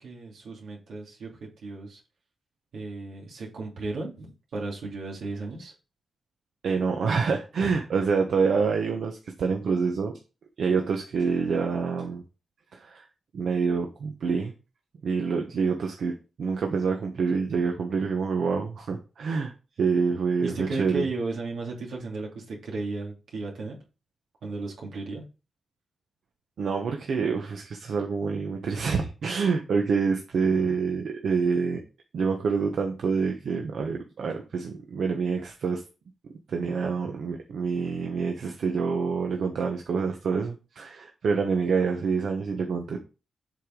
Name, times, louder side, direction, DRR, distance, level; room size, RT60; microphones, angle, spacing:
voice 1, 0.0-2.0 2.7-5.7 7.6-7.7 20.4-23.8 24.4-25.2, right 3 dB, 80° right, -2 dB, 2.7 m, -35 dB
voice 2, 6.6-10.1 10.6-12.2 12.7-13.0 13.3-14.5 15.0-19.5 19.8-21.1 26.6-31.8 32.1-35.8 36.5-43.0, right 5 dB, 65° right, 3 dB, 1.0 m, -27 dB
7.6 x 5.0 x 3.8 m, 0.32 s
wide cardioid pair, 150°, 0 cm